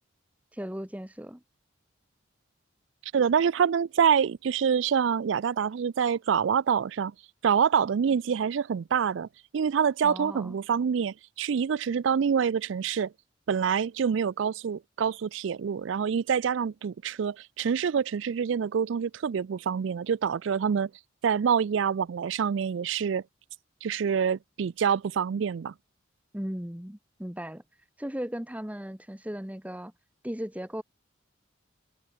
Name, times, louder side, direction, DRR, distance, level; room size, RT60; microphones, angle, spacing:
voice 1, 0.5-1.4 10.0-10.6 26.3-27.6 28.0-29.9 30.2-30.8, equal, 5° right, 1.1 m, -36 dB
voice 2, 3.1-7.1 7.4-9.3 9.5-13.1 13.5-20.9 21.2-23.2 23.8-25.7, right 7 dB, 75° right, 0.4 m, -26 dB
head